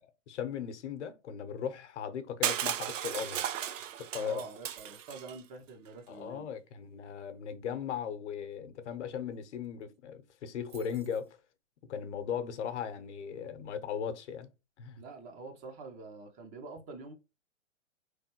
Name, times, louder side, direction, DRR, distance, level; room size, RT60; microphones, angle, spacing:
voice 1, 0.3-3.5 4.1-4.4 6.1-11.4 11.9-14.5 14.8-15.0, left 8 dB, 65° left, 0.9 m, -38 dB
Crushing, 2.4-5.4, right 10 dB, 75° right, 0.7 m, -35 dB
voice 2, 4.1-6.5 15.0-17.1, right 3 dB, 20° right, 0.6 m, -46 dB
sound 1, 4.7-5.4 9.3-9.4 9.6-10.0 10.7-11.3, right 8 dB, 40° right, 1.1 m, -58 dB
4.2 x 3.4 x 2.8 m
hypercardioid pair, 130°, 38 cm